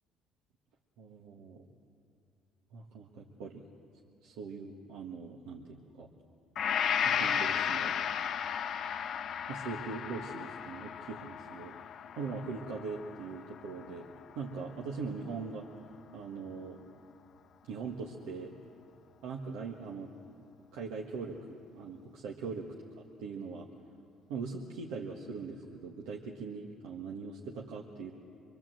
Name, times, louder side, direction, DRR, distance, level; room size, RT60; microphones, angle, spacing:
voice 1, 1.0-1.7 2.7-3.6 4.2-6.1 7.0-7.9 9.5-11.7 12.2-14.1 14.3-15.7 16.1-16.8 17.7-18.5 19.2-20.1 20.7-22.7 23.2-23.7 24.3-28.1, right 4 dB, 85° right, -1 dB, 1.6 m, -41 dB
Gong, 6.6-14.6, left 8 dB, 60° left, 0.7 m, -34 dB
25.5 x 22.0 x 7.8 m, 2.5 s
supercardioid pair, 75°, 0 cm